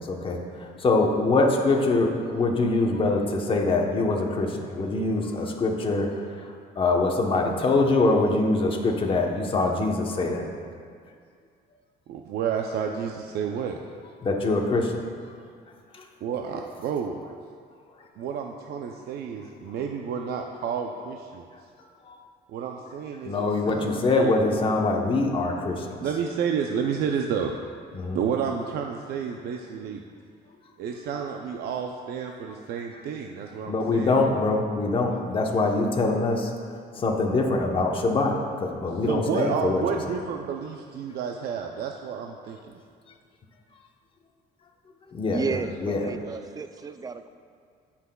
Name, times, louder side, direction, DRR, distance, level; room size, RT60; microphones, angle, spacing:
voice 1, 0.0-6.1 6.8-10.4 14.2-15.0 22.0-22.2 23.2-26.0 27.9-28.2 33.7-36.5 37.0-39.8 45.1-46.1, left 3 dB, 30° left, 1 dB, 1.0 m, -24 dB
voice 2, 12.1-13.8 16.2-17.2 18.2-21.5 22.5-24.3 26.0-27.5 28.1-30.0 30.8-34.2 39.0-42.7 46.3-46.4, right 7 dB, 70° right, 2 dB, 0.5 m, -30 dB
voice 3, 45.3-47.3, right 5 dB, 20° right, 10 dB, 0.3 m, -32 dB
16.0 x 5.9 x 2.3 m, 2.2 s
cardioid pair, 110°, 17 cm